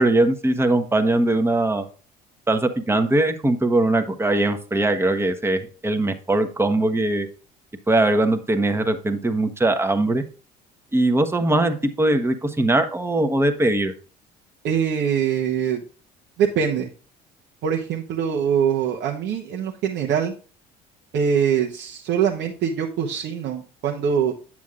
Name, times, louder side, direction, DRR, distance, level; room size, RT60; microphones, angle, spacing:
voice 1, 0.0-1.9 2.5-7.3 7.9-10.2 10.9-13.9, right 2 dB, 10° right, 7 dB, 1.0 m, -21 dB
voice 2, 14.6-15.8 16.4-16.9 17.6-20.3 21.1-24.3, right 7 dB, 65° right, 0 dB, 1.0 m, -23 dB
9.3 x 7.2 x 2.5 m, 0.38 s
supercardioid pair, 85°, 20 cm